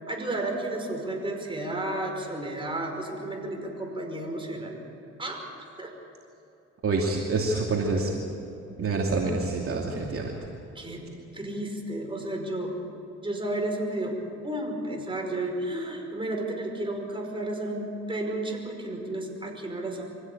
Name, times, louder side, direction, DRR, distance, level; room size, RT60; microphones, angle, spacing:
voice 1, 0.1-4.8 5.2-5.4 5.8-5.9 10.8-11.1 11.3-12.7 13.2-14.2 14.4-20.0, right 1 dB, 15° right, 1 dB, 5.3 m, -32 dB
voice 2, 6.8-8.1 8.8-10.4, right 3 dB, 45° right, -1 dB, 2.7 m, -27 dB
24.5 x 16.0 x 8.7 m, 2.9 s
cardioid pair, 90°, 30 cm